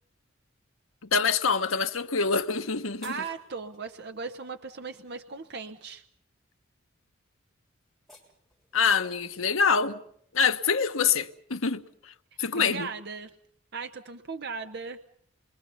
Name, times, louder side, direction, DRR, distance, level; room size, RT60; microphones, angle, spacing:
voice 1, 1.1-3.2 8.7-10.0 10.3-11.8 12.4-12.9, left 5 dB, 90° left, 1.2 m, -25 dB
sound 1, 2.4-3.8 7.8-9.3, left 2 dB, ahead, 6.8 m, -56 dB
voice 2, 3.0-6.0 12.5-13.3 13.7-15.0, right 5 dB, 55° right, 0.9 m, -37 dB
28.0 x 23.0 x 5.7 m
head